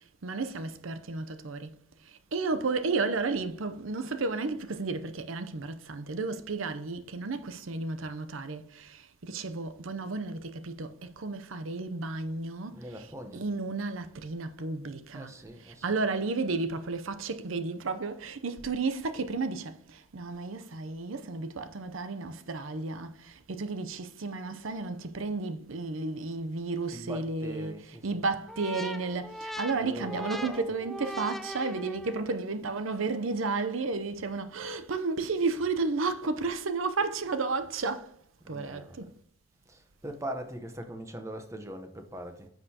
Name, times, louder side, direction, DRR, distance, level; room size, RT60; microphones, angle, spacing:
voice 1, 0.2-13.0 13.3-15.3 15.6-38.2 38.5-39.1, right 3 dB, 90° right, 0.7 m, -33 dB
voice 2, 12.7-13.4 15.1-15.9 26.9-28.1 29.7-30.7 38.4-39.1 39.7-42.5, right 1 dB, 15° right, 0.9 m, -41 dB
sound 1, 28.5-32.4, equal, ahead, 0.4 m, -40 dB
9.9 x 6.5 x 2.9 m
head